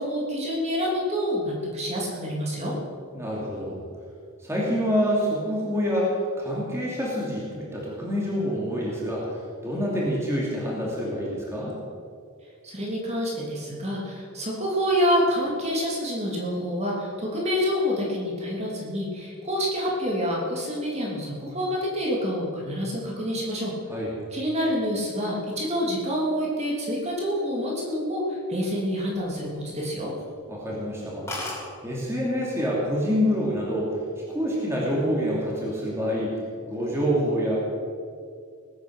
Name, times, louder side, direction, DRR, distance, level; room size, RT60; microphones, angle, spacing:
voice 1, 0.0-2.7 12.6-23.7 24.3-30.1, equal, 30° right, -3 dB, 3.0 m, -27 dB
voice 2, 3.1-3.9 4.4-11.7 23.9-24.1 30.5-31.3 31.8-34.0 34.3-37.6, equal, 10° right, -5 dB, 2.8 m, -27 dB
sound 1, 28.8-29.8 30.2-30.4 30.7-30.8 31.0-31.1 31.3-31.6 32.5-32.9 33.2-33.6, left 2 dB, 10° left, 3.8 m, -36 dB
19.5 x 9.6 x 6.4 m, 2.3 s
head